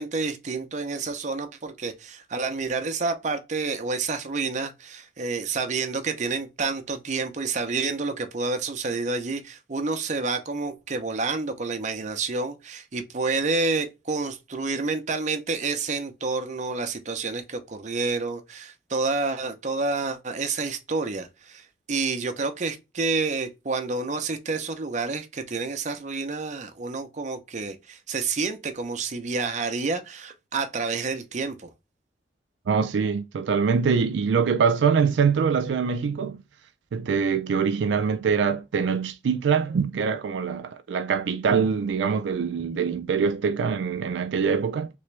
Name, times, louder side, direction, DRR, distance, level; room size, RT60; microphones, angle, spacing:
voice 1, 0.0-31.7, right 4 dB, 45° right, 0.7 m, -29 dB
voice 2, 32.7-36.4 36.9-44.9, right 6 dB, 90° right, 0.4 m, -24 dB
3.3 x 3.1 x 3.1 m
head